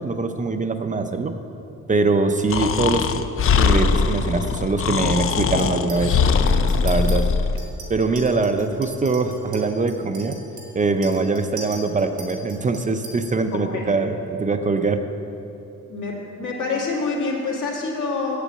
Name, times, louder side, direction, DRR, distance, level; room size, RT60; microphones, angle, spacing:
voice 1, 0.0-1.4 1.9-3.3 3.6-6.2 6.8-7.3 7.9-10.4 10.7-15.0, right 3 dB, 25° right, 7 dB, 0.5 m, -22 dB
Breathing, 2.5-7.6, left 5 dB, 45° left, 0.4 m, -21 dB
Chink clink, 5.6-6.1 6.5-7.2 7.6-13.3, right 3 dB, 70° right, 2.4 m, -40 dB
voice 2, 13.5-13.8 15.9-18.4, left 4 dB, 80° left, -2 dB, 2.1 m, -26 dB
8.3 x 7.4 x 8.5 m, 2.8 s
wide cardioid pair, 150°, 30 cm